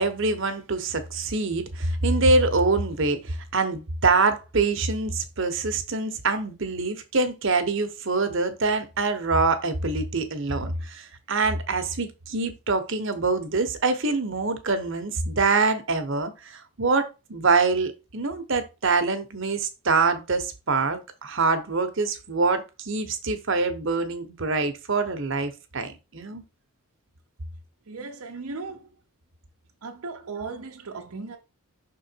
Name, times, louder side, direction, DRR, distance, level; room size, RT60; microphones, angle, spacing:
voice 1, 0.0-26.4, right 3 dB, 55° right, 1.0 m, -25 dB
voice 2, 27.9-28.9 29.8-31.4, right 4 dB, 80° right, 0.8 m, -36 dB
6.1 x 3.9 x 4.5 m
head